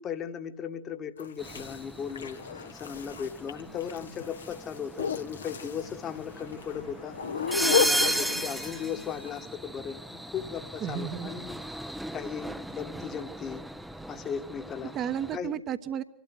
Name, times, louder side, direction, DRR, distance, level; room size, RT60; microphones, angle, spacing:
voice 1, 0.0-7.2 7.6-13.6 14.1-14.9 15.3-15.5, left 7 dB, 30° left, 7 dB, 1.6 m, -37 dB
sound 1, 1.2-9.5, left 7 dB, 70° left, 1.3 m, -33 dB
sound 2, 1.4-15.4, right 1 dB, ahead, 0.8 m, -36 dB
voice 2, 10.8-11.5 14.9-16.0, right 9 dB, 30° right, 11 dB, 1.2 m, -33 dB
25.5 x 12.5 x 7.9 m, 0.80 s
figure-of-eight pair, 90°, 0 cm